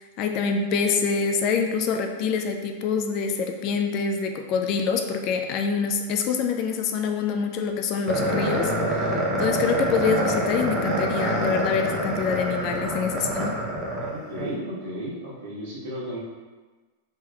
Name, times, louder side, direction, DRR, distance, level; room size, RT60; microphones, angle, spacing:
voice 1, 0.2-13.6, left 5 dB, 45° left, 4 dB, 0.3 m, -26 dB
sound 1, 8.1-14.5, right 1 dB, 10° right, 0.6 m, -26 dB
voice 2, 14.1-16.2, equal, 70° right, -7 dB, 1.4 m, -34 dB
3.3 x 3.0 x 2.3 m, 1.3 s
hypercardioid pair, 135°, 0 cm